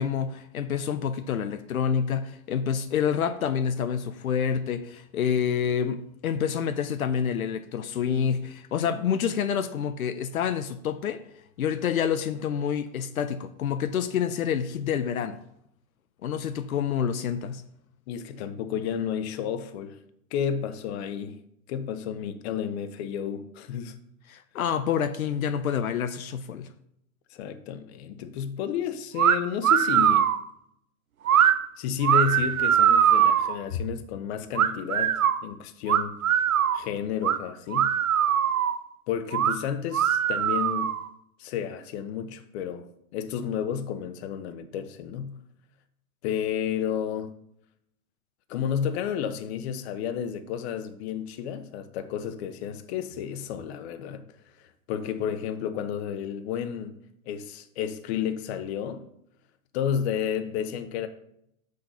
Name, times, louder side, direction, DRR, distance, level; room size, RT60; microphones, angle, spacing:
voice 1, 0.0-11.2 11.6-15.4 16.2-17.6 24.3-26.7, left 8 dB, 85° left, 0.8 m, -28 dB
voice 2, 18.1-20.0 20.3-21.4 21.7-23.9 27.3-30.2 31.8-36.1 36.7-37.9 39.1-40.9 41.4-42.9 43.1-45.3 46.2-47.3 48.5-54.2 54.9-56.9 57.3-59.0 59.7-61.1, left 8 dB, 50° left, 1.1 m, -31 dB
sound 1, 29.2-29.4 29.6-30.4 31.3-31.5 32.0-33.6 34.6-35.4 35.9-36.8 37.2-37.4 37.7-38.8 39.3-39.6 39.9-41.0, right 9 dB, 85° right, 0.8 m, -21 dB
6.9 x 6.7 x 5.6 m
hypercardioid pair, 125°, 41 cm